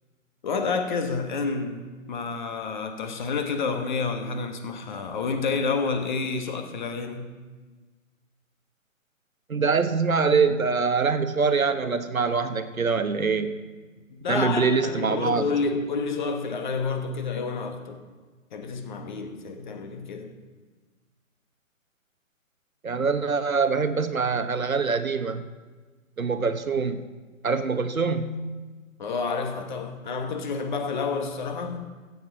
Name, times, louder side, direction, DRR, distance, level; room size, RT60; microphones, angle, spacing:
voice 1, 0.4-7.3 14.1-18.0 18.5-20.4 29.0-31.9, left 4 dB, 35° left, 7 dB, 1.2 m, -29 dB
voice 2, 9.5-13.6 14.3-15.5 22.8-25.4 26.2-27.0 27.4-28.4, right 5 dB, 80° right, 10 dB, 1.0 m, -24 dB
15.0 x 8.1 x 4.8 m, 1.3 s
figure-of-eight pair, 135°, 41 cm